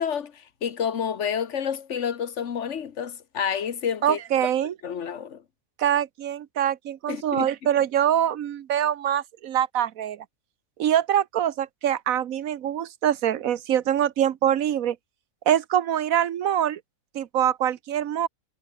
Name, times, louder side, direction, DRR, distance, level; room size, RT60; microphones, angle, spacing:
voice 1, 0.0-4.2 4.8-5.4 7.1-7.5, left 7 dB, 60° left, 1.5 m, -29 dB
voice 2, 4.0-4.7 5.8-10.2 10.8-15.0 15.5-16.8 17.1-18.3, right 10 dB, 90° right, 1.3 m, -24 dB
omnidirectional pair, 1.4 m